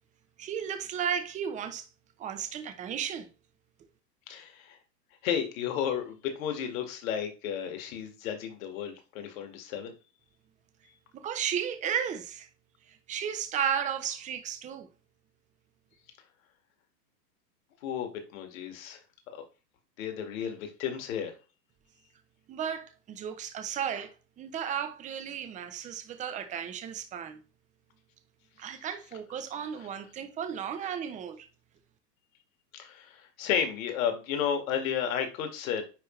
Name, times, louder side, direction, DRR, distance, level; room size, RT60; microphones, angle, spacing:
voice 1, 0.4-1.9 2.2-3.3 11.1-12.5 12.9-14.9 22.5-27.4 28.6-31.5, right 8 dB, 15° right, 0.8 m, -34 dB
voice 2, 4.3-4.8 5.2-9.9 17.8-19.0 19.3-19.4 20.0-21.3 32.7-35.9, left 8 dB, 50° left, 2.1 m, -33 dB
9.9 x 3.3 x 3.2 m
hypercardioid pair, 120°, 50 cm